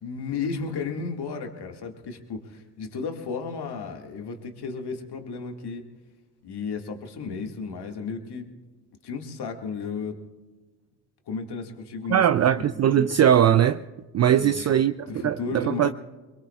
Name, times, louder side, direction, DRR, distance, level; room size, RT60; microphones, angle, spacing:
voice 1, 0.0-5.9 6.4-8.5 9.0-10.2 11.3-12.2 12.8-13.1 14.3-14.8 15.1-15.9, left 5 dB, 55° left, 2.1 m, -33 dB
voice 2, 12.1-13.8 14.1-14.9 15.2-15.9, right 10 dB, 35° right, 0.4 m, -20 dB
23.5 x 21.5 x 2.4 m
hypercardioid pair, 55°, 47 cm